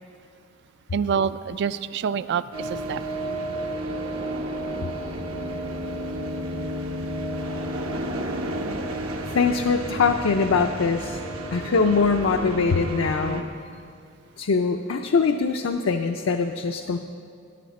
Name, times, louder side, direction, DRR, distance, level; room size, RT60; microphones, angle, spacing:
voice 1, 0.9-3.0, right 7 dB, 55° right, 15 dB, 0.3 m, -26 dB
sound 1, 2.5-13.4, right 1 dB, 85° right, 1.1 m, -31 dB
voice 2, 9.3-11.2 11.5-13.4 14.4-17.0, left 4 dB, 70° left, 5 dB, 0.5 m, -22 dB
15.0 x 10.5 x 4.2 m, 2.4 s
head